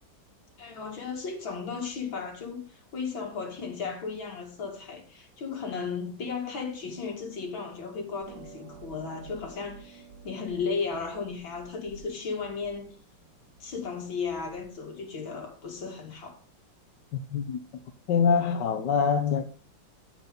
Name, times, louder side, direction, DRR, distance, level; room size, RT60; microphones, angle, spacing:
voice 1, 0.6-12.9 13.6-16.4, left 5 dB, 80° left, 3.1 m, -35 dB
Harp, 8.2-14.9, right 5 dB, 65° right, 5.0 m, -51 dB
voice 2, 18.1-19.4, left 6 dB, 65° left, 1.5 m, -24 dB
14.0 x 4.8 x 5.2 m
omnidirectional pair, 2.1 m